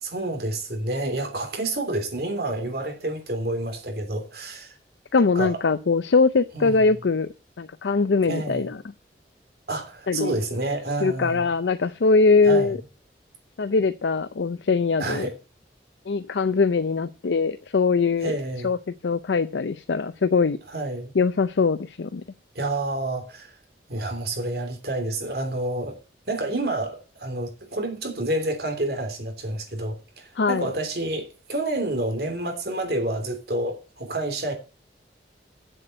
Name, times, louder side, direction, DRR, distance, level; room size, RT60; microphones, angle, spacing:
voice 1, 0.0-4.7 5.3-5.6 6.5-6.8 8.3-8.7 9.7-11.5 12.4-12.8 15.0-15.3 18.2-18.7 20.7-21.1 22.5-23.5 23.9-26.0 26.3-34.5, right 2 dB, 60° right, 3.1 m, -29 dB
voice 2, 5.1-7.3 7.6-8.8 10.1-10.4 11.0-12.8 13.6-15.3 16.1-18.3 18.6-18.8 19.0-20.6 21.2-22.2 30.4-30.7, left 4 dB, 90° left, 0.5 m, -22 dB
7.8 x 7.8 x 7.7 m
head